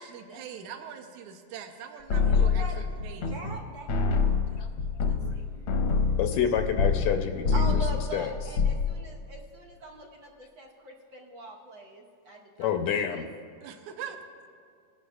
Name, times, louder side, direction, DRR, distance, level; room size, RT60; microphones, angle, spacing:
voice 1, 0.0-3.3 13.6-14.2, right 8 dB, 85° right, 6 dB, 2.2 m, -42 dB
sound 1, 2.1-3.6 3.9-7.2 7.4-8.0 8.4-8.9, left 5 dB, 65° left, 1.4 m, -25 dB
voice 2, 2.2-2.8 3.2-4.3 5.1-5.4 7.5-12.7 13.1-13.2, right 2 dB, 55° right, -1 dB, 1.4 m, -42 dB
voice 3, 6.2-7.6 8.1-8.3 12.6-13.3, left 8 dB, 80° left, 6 dB, 1.8 m, -28 dB
20.0 x 11.0 x 2.3 m, 2.3 s
omnidirectional pair, 3.4 m